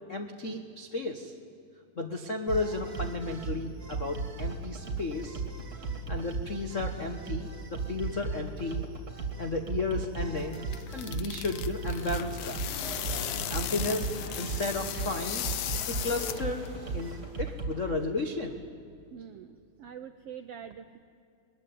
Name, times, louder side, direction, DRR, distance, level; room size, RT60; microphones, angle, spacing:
voice 1, 0.1-1.3 2.0-5.4 6.1-8.9 9.4-10.6 10.9-12.6 13.5-15.4 16.0-16.6 16.9-17.1 17.4-18.5, left 2 dB, 70° left, 5 dB, 0.7 m, -33 dB
sound 1, 2.5-17.8, right 4 dB, 30° right, 2.7 m, -36 dB
sound 2, 10.4-16.7, left 13 dB, 85° left, 1.3 m, -37 dB
sound 3, 12.5-17.6, left 1 dB, 30° left, 6.0 m, -43 dB
voice 2, 19.1-21.0, right 8 dB, 80° right, 8 dB, 1.4 m, -45 dB
22.0 x 20.5 x 9.5 m, 2.5 s
omnidirectional pair, 3.7 m